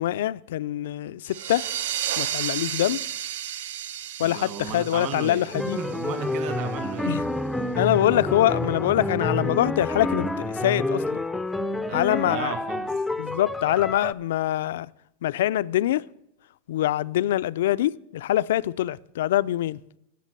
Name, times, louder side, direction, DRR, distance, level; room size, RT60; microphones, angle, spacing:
voice 1, 0.0-1.7 2.2-3.0 4.2-5.8 7.1-7.2 7.8-11.2 11.9-12.5 13.2-14.9 15.2-16.1 16.7-19.8, left 13 dB, 75° left, 0.3 m, -24 dB
sound 1, 1.3-6.6, right 10 dB, 70° right, 0.5 m, -32 dB
voice 2, 4.2-7.3 7.7-7.8 11.8-12.9, right 6 dB, 40° right, 1.4 m, -34 dB
sound 2, 5.5-14.1, left 1 dB, 5° left, 0.4 m, -29 dB
10.5 x 7.5 x 6.6 m
supercardioid pair, 155°, 0 cm